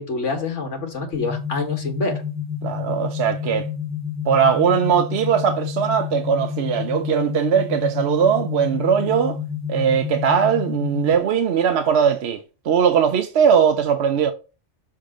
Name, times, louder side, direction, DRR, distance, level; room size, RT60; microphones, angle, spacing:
voice 1, 0.0-2.2, left 3 dB, 85° left, 1.9 m, -26 dB
sound 1, 1.1-11.1, left 8 dB, 15° right, 1.3 m, -29 dB
voice 2, 2.6-3.7 4.3-9.4 9.7-14.3, right 7 dB, 65° right, 0.9 m, -20 dB
6.7 x 3.6 x 5.0 m
omnidirectional pair, 1.2 m